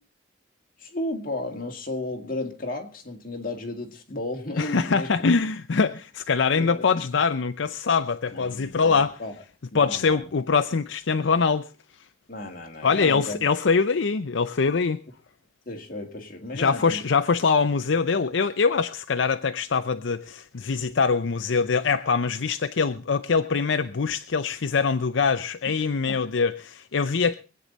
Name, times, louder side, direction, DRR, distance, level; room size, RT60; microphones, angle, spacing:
voice 1, 0.8-5.1 6.6-7.0 8.3-9.3 9.7-10.3 12.3-13.4 15.7-17.0 26.0-26.2, left 2 dB, 45° left, 2.1 m, -34 dB
voice 2, 4.6-9.1 9.7-11.7 12.8-15.0 16.5-27.3, left 5 dB, 75° left, 0.6 m, -23 dB
24.0 x 8.7 x 4.0 m
head